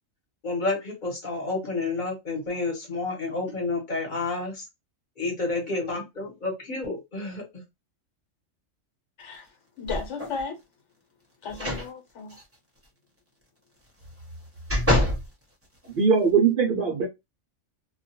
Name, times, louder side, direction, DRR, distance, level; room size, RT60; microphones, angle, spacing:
voice 1, 0.4-4.6 5.2-7.4, left 3 dB, 40° left, 1.1 m, -30 dB
voice 2, 9.2-10.6 11.4-12.4, left 4 dB, 65° left, 1.2 m, -35 dB
sound 1, 9.9-10.4 11.5-11.9 12.3-12.4 14.0-15.3 15.8-15.9, left 1 dB, 15° right, 0.6 m, -26 dB
voice 3, 16.0-17.1, right 6 dB, 65° right, 0.5 m, -20 dB
2.4 x 2.2 x 2.7 m
omnidirectional pair, 1.4 m